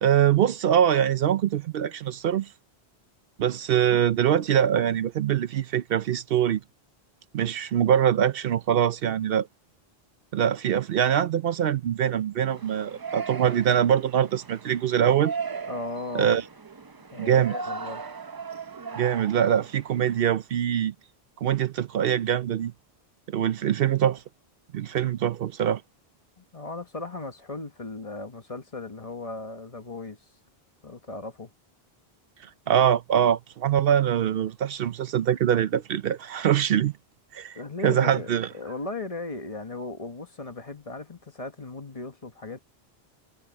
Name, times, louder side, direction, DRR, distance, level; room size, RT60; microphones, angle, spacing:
voice 1, 0.0-2.5 3.4-6.6 7.3-9.5 10.3-15.3 16.1-16.4 17.2-17.5 18.9-20.9 21.4-22.7 23.3-24.2 24.7-25.8 32.7-36.9 37.3-38.5, right 9 dB, 70° right, 0.8 m, -23 dB
Yell, 12.5-20.2, right 5 dB, 30° right, 0.5 m, -38 dB
voice 2, 15.7-16.4 17.1-18.0 26.4-30.2 30.8-31.5 37.5-42.6, left 3 dB, 35° left, 1.3 m, -37 dB
omnidirectional pair, 1.0 m